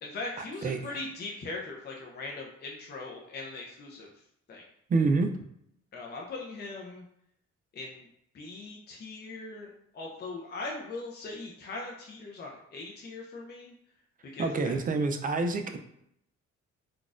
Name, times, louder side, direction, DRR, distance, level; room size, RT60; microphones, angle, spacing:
voice 1, 0.0-4.1 4.5-4.6 5.9-7.0 7.7-8.1 8.3-13.7 14.2-14.7, left 3 dB, 35° left, -1 dB, 0.5 m, -40 dB
voice 2, 4.9-5.3 14.4-15.8, right 3 dB, 30° right, 6 dB, 0.4 m, -27 dB
3.9 x 2.3 x 2.4 m, 0.74 s
cardioid pair, 90°, 30 cm